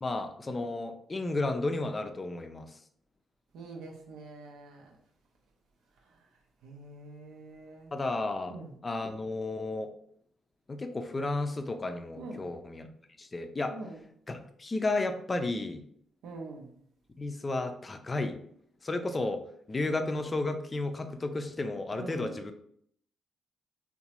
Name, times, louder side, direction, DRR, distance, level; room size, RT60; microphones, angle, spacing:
voice 1, 0.0-2.8 7.9-8.5 8.8-9.9 10.7-12.9 13.2-13.7 14.3-15.8 17.2-18.4 18.8-19.4 19.7-22.5, left 2 dB, 35° left, 7 dB, 0.4 m, -33 dB
voice 2, 3.5-5.0 6.1-6.2 6.6-7.9 8.5-8.8 12.2-12.5 13.7-14.0 16.2-16.8 21.9-22.4, right 3 dB, 75° right, 1 dB, 0.5 m, -45 dB
3.7 x 2.2 x 2.9 m, 0.66 s
hypercardioid pair, 40°, 0 cm